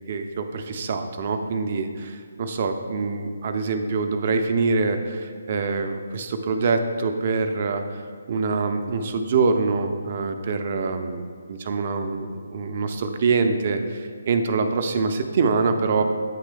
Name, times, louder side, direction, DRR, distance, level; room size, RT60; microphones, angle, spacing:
voice 1, 0.1-8.0 8.3-16.0, right 4 dB, 40° right, 7 dB, 0.5 m, -25 dB
9.0 x 3.2 x 3.2 m, 2.1 s
figure-of-eight pair, 140°, 0 cm